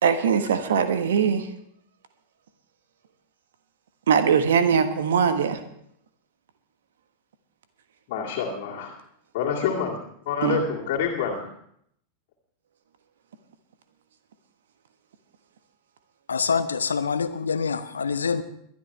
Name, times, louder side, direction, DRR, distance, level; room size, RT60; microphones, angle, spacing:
voice 1, 0.0-1.5 4.1-5.6 10.4-10.6, right 7 dB, 60° right, 10 dB, 1.3 m, -21 dB
voice 2, 8.1-8.9 9.3-10.0 10.3-11.5, left 7 dB, 50° left, -5 dB, 2.1 m, -27 dB
voice 3, 16.3-18.4, left 5 dB, 70° left, 12 dB, 0.8 m, -25 dB
22.0 x 11.5 x 3.4 m, 0.70 s
figure-of-eight pair, 90°, 0 cm